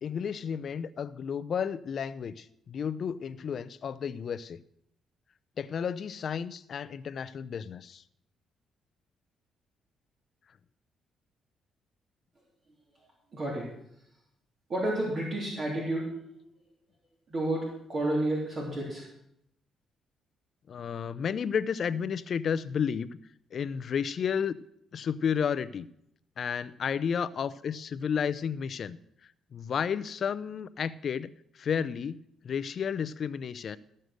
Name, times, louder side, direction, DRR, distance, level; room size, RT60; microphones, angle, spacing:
voice 1, 0.0-4.6 5.6-8.0 20.7-23.1 23.5-24.6 24.9-25.9 26.4-29.0 29.5-32.2 32.4-33.8, left 7 dB, 55° left, 14 dB, 0.5 m, -32 dB
voice 2, 13.3-13.7 14.7-16.1 17.3-19.1, right 1 dB, 45° right, -3 dB, 3.3 m, -30 dB
14.0 x 6.6 x 6.4 m, 0.75 s
cardioid pair, 90°, 0 cm